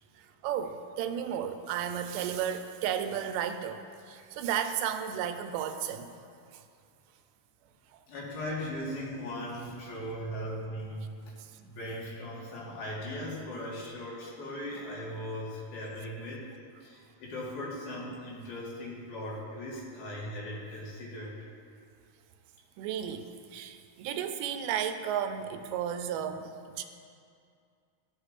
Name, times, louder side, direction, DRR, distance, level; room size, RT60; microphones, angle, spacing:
voice 1, 0.2-6.1 6.5-6.6 7.9-8.0 22.8-26.8, right 9 dB, 90° right, 7 dB, 2.2 m, -33 dB
voice 2, 8.1-11.3 11.6-16.5 16.8-21.4 26.8-26.9, left 1 dB, 70° left, -5 dB, 3.0 m, -38 dB
14.5 x 6.4 x 2.5 m, 2.3 s
omnidirectional pair, 3.8 m